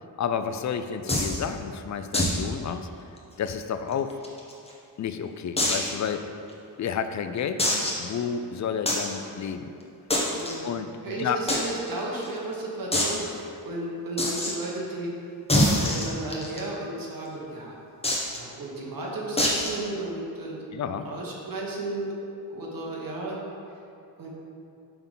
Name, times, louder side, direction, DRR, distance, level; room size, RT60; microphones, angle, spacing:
voice 1, 0.2-2.9 3.4-4.2 5.0-6.3 6.8-9.7 10.6-11.4 20.7-21.1, left 7 dB, 45° left, 9 dB, 0.4 m, -31 dB
sound 1, 1.1-1.4 2.1-2.4 2.7-2.8 3.2-3.3 3.9-4.7 5.6-5.9 6.5-6.6 7.6-8.1 8.9-9.1 10.1-10.5 11.5-11.6 11.9-12.0 12.2-12.3 12.9-13.1 14.2-14.5 15.5-16.6 18.0-18.4 19.4-19.8, left 1 dB, 15° left, 1.1 m, -24 dB
voice 2, 11.0-15.1 15.6-17.7 18.3-20.6 21.0-22.1 22.5-23.5 24.2-24.3, right 2 dB, 55° right, -3 dB, 1.4 m, -34 dB
5.9 x 3.7 x 5.4 m, 2.6 s
cardioid pair, 85°, 40 cm